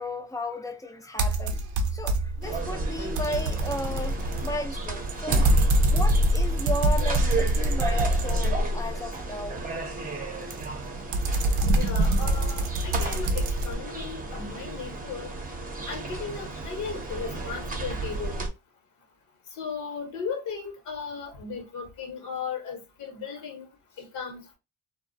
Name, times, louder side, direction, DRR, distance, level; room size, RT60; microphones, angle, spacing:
voice 1, 0.0-5.4 5.9-9.7, left 1 dB, 10° left, 0.4 m, -35 dB
sound 1, 1.2-2.5 2.8-9.0 10.5-13.7, right 1 dB, 75° right, 0.5 m, -24 dB
sound 2, 2.4-18.5, right 3 dB, 30° right, 0.7 m, -34 dB
voice 2, 11.6-15.3 15.9-18.5 19.5-23.7 24.0-24.6, left 5 dB, 70° left, 0.9 m, -36 dB
2.3 x 2.1 x 2.5 m
cardioid pair, 90°, 30 cm